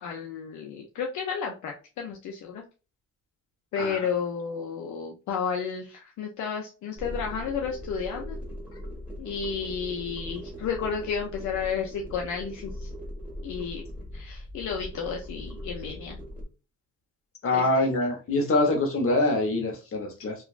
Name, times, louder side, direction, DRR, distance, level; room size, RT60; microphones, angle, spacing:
voice 1, 0.0-2.6 3.7-8.4 9.2-12.9 13.4-13.8 14.1-16.2 17.5-17.9, left 6 dB, 70° left, 0.6 m, -32 dB
sound 1, 7.0-16.5, equal, 5° right, 1.5 m, -39 dB
voice 2, 17.4-20.3, left 2 dB, 45° left, 1.0 m, -24 dB
2.9 x 2.4 x 2.4 m
cardioid pair, 90°, 30 cm